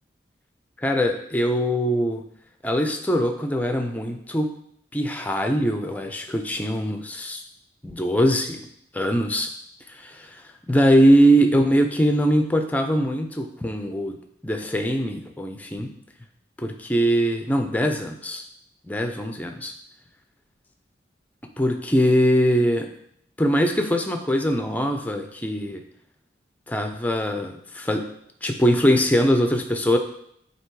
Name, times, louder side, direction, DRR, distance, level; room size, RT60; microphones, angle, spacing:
voice 1, 0.8-2.2 2.6-4.5 4.9-7.4 7.8-8.7 8.9-9.5 9.9-10.4 10.7-14.2 14.4-15.9 16.6-18.4 18.9-19.7 21.6-22.9 23.4-25.8 26.7-28.1 28.4-30.0, equal, 10° left, 5 dB, 0.4 m, -22 dB
8.0 x 2.9 x 4.6 m, 0.71 s
head